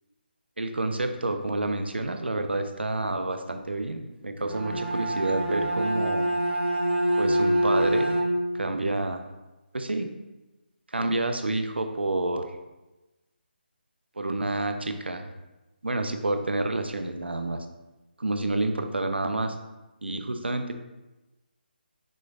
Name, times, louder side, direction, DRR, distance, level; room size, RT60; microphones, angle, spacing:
voice 1, 0.6-6.3 7.2-8.1 8.5-9.2 9.7-10.1 10.9-12.5 14.2-15.3 15.8-17.6 18.2-19.5 20.0-20.8, right 2 dB, 75° right, 7 dB, 0.5 m, -29 dB
Bowed string instrument, 4.4-8.7, right 1 dB, 90° right, 0.9 m, -25 dB
6.1 x 3.1 x 2.5 m, 1.1 s
figure-of-eight pair, 150°, 6 cm